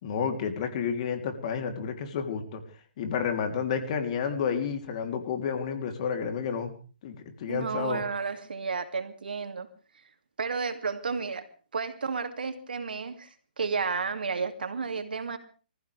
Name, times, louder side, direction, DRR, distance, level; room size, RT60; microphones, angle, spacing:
voice 1, 0.0-2.6 3.0-6.7 7.0-8.0, left 6 dB, 45° left, 5 dB, 3.3 m, -30 dB
voice 2, 7.5-9.7 10.4-11.4 11.7-13.3 13.6-15.4, right 5 dB, 85° right, 7 dB, 2.7 m, -32 dB
27.5 x 14.5 x 3.5 m, 0.38 s
hypercardioid pair, 145°, 5 cm